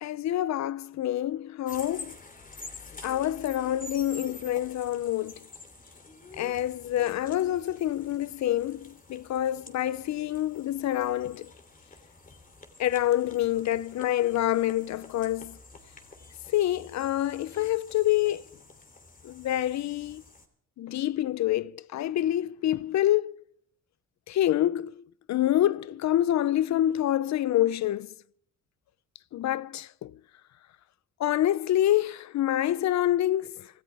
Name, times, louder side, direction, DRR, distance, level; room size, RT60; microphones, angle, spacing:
voice 1, 0.0-2.2 3.0-5.3 6.4-11.5 12.8-15.6 16.5-18.4 19.2-20.2 20.8-23.3 24.3-24.9 25.3-28.1 29.3-30.1 31.2-33.5, left 13 dB, 65° left, 0.7 m, -27 dB
sound 1, 1.7-20.5, left 3 dB, 25° left, 3.0 m, -48 dB
26.5 x 14.5 x 3.5 m
cardioid pair, 90°, 30 cm